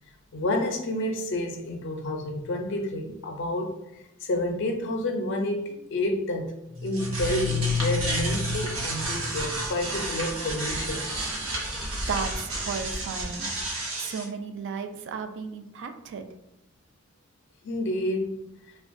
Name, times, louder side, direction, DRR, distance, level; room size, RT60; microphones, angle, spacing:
voice 1, 0.3-6.5 6.8-11.3 17.6-18.4, left 1 dB, 55° left, 3 dB, 0.5 m, -29 dB
sound 1, 6.7-14.2, equal, 75° right, 0.7 m, -30 dB
voice 2, 11.5-13.5 14.0-16.3, right 5 dB, 55° right, 7 dB, 0.3 m, -34 dB
2.9 x 2.2 x 2.5 m, 0.87 s
head